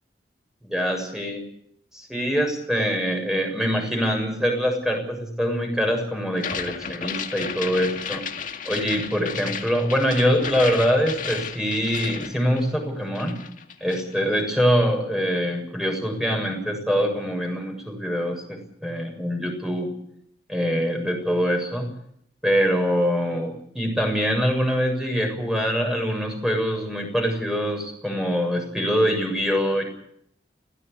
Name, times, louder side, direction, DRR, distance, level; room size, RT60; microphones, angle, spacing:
voice 1, 0.6-1.4 1.9-8.2 8.7-13.4 13.8-19.9 20.5-21.9 22.4-29.8, equal, 5° right, 2 dB, 7.2 m, -24 dB
sound 1, 6.3-12.9 13.2-14.1, left 6 dB, 50° left, 2.1 m, -33 dB
22.5 x 17.5 x 8.6 m, 0.69 s
head